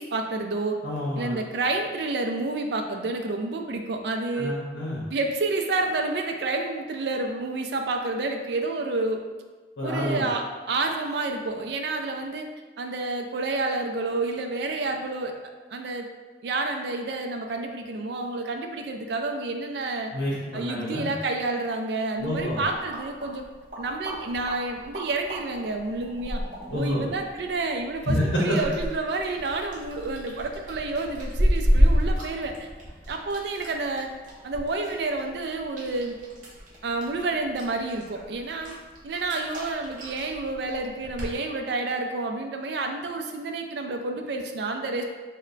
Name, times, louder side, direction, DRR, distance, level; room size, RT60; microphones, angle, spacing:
voice 1, 0.0-0.8 1.2-4.5 5.1-9.2 9.8-12.5 12.8-15.3 15.7-16.1 16.4-20.1 20.5-23.4 23.8-26.4 26.7-32.7 33.1-34.1 34.4-36.2 36.8-38.7 39.0-45.0, right 3 dB, 60° right, 4 dB, 0.3 m, -29 dB
voice 2, 0.8-1.3 4.3-5.0 9.8-10.2 20.1-21.1 22.2-22.6 26.7-27.0 28.1-28.6, equal, 80° left, -5 dB, 0.7 m, -28 dB
sound 1, 22.2-41.3, equal, 45° right, 0.7 m, -31 dB
3.1 x 2.1 x 3.8 m, 1.3 s
head